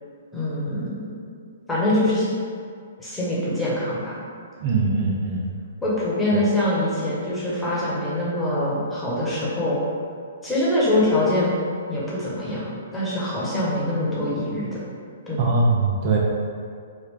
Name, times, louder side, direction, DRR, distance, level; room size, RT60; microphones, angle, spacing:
voice 1, 0.3-1.1 1.7-2.3 3.0-4.2 5.8-9.8 10.4-11.5 11.9-14.8 15.3-15.6, left 1 dB, 10° left, -9 dB, 1.0 m, -24 dB
voice 2, 4.6-5.5 15.4-16.2, right 3 dB, 45° right, -3 dB, 0.5 m, -21 dB
3.2 x 2.2 x 3.6 m, 2.2 s
hypercardioid pair, 130°, 0 cm